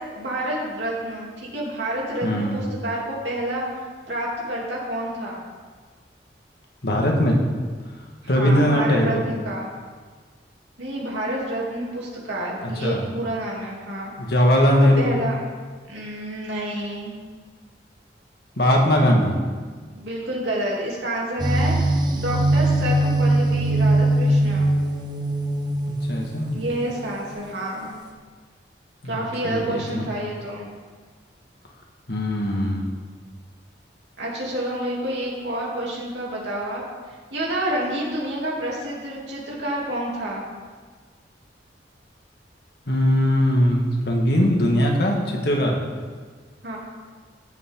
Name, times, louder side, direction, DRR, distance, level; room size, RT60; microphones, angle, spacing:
voice 1, 0.1-3.8 4.1-5.4 8.3-9.7 10.8-14.1 14.8-15.4 15.9-17.2 19.9-21.8 22.1-24.7 26.5-27.9 29.1-30.7 34.2-36.8 37.3-40.4 46.6-46.8, right 1 dB, 80° right, -4 dB, 3.2 m, -28 dB
voice 2, 2.2-2.6 6.8-7.4 8.2-9.2 12.6-13.0 14.2-15.1 18.6-19.4 26.1-26.6 29.0-30.1 32.1-32.8 42.9-45.8, equal, 60° left, 0 dB, 1.7 m, -20 dB
sound 1, 21.4-26.9, right 1 dB, 25° right, 0.9 m, -21 dB
15.0 x 7.2 x 3.8 m, 1.5 s
head